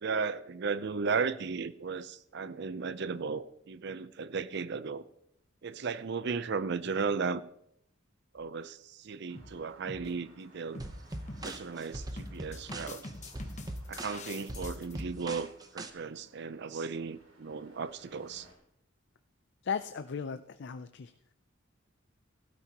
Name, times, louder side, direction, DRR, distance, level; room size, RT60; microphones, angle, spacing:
voice 1, 0.0-5.0 5.6-7.4 8.3-10.8 11.4-13.1 13.9-18.5, right 5 dB, 60° right, 0.5 m, -35 dB
sound 1, 8.4-8.7 9.3-9.6 9.9-10.1 10.7-11.0 11.3-11.9 12.2-15.0, left 2 dB, 35° left, 1.1 m, -45 dB
Traffic noise roadway noise, 9.3-18.5, right 1 dB, 80° right, 2.8 m, -61 dB
sound 2, 10.8-15.9, right 1 dB, 20° right, 0.8 m, -41 dB
voice 2, 19.6-21.1, left 6 dB, 60° left, 0.5 m, -36 dB
16.0 x 12.5 x 2.9 m
head